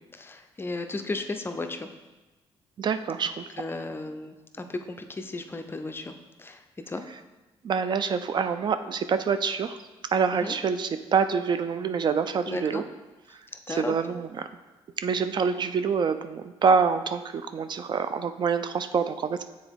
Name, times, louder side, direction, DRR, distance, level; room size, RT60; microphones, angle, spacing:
voice 1, 0.1-1.9 3.6-6.6 6.9-7.0 10.3-10.5 12.5-12.8 13.7-14.0, left 2 dB, 20° left, 7 dB, 0.5 m, -34 dB
voice 2, 2.8-3.4 7.6-9.8 10.1-12.8 13.3-13.4 13.7-14.5 15.0-19.4, right 6 dB, 45° right, 10 dB, 0.3 m, -26 dB
7.1 x 3.8 x 3.5 m, 1.1 s
cardioid pair, 80°, 10 cm